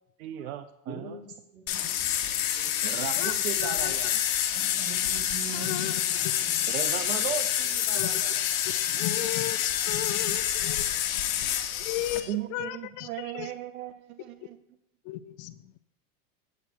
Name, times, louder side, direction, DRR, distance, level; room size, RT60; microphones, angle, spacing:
voice 1, 0.0-1.2 2.8-4.2 6.7-8.4 12.3-14.6, right 11 dB, 75° right, 11 dB, 0.8 m, -37 dB
voice 2, 0.9-2.2 2.5-3.3 4.5-6.0 6.4-6.6 7.2-7.3, right 5 dB, 45° right, 1 dB, 3.1 m, -43 dB
sound 1, 1.7-12.2, left 11 dB, 70° left, 1.2 m, -28 dB
voice 3, 3.2-3.9 5.5-5.9 6.2-6.6 7.9-8.2 8.6-10.9 11.8-13.5 15.0-15.8, left 14 dB, 45° left, 13 dB, 0.6 m, -35 dB
8.2 x 8.2 x 4.5 m, 0.79 s
supercardioid pair, 115°, 42 cm